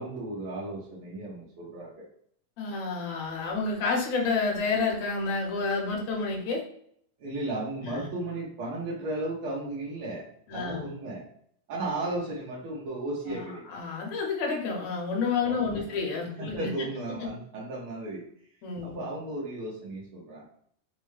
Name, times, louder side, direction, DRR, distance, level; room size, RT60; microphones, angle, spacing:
voice 1, 0.0-2.1 7.2-10.3 10.5-11.2 11.7-13.7 15.5-16.0 16.4-18.3 18.8-20.5, right 2 dB, 80° right, -5 dB, 1.2 m, -35 dB
voice 2, 2.6-6.6 7.9-8.1 10.5-10.9 13.3-13.4 13.7-16.7 18.6-19.0, left 4 dB, 70° left, 0 dB, 1.9 m, -29 dB
5.0 x 2.1 x 3.1 m, 0.66 s
omnidirectional pair, 3.7 m